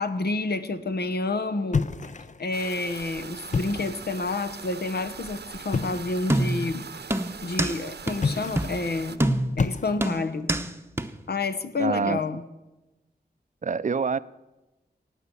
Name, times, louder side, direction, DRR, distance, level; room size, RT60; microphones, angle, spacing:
voice 1, 0.0-1.9 2.4-6.9 7.4-9.2 9.6-10.5 11.3-12.4, left 3 dB, 70° left, 9 dB, 1.0 m, -29 dB
sound 1, 1.7-2.5 3.4-4.1 5.7-6.2 8.1-8.8 9.6-10.3, left 4 dB, 45° left, 0.6 m, -29 dB
sound 2, 2.5-9.2, right 6 dB, 75° right, 0.8 m, -41 dB
sound 3, 6.3-6.7 7.1-7.8 8.1-8.2 8.6-8.8 9.2-9.6 10.0-10.7 11.0-11.1, right 1 dB, 15° right, 0.8 m, -25 dB
voice 2, 11.8-12.2 13.6-14.2, right 5 dB, 45° right, 16 dB, 0.4 m, -25 dB
16.5 x 9.2 x 6.9 m, 1.0 s
wide cardioid pair, 75°, 17 cm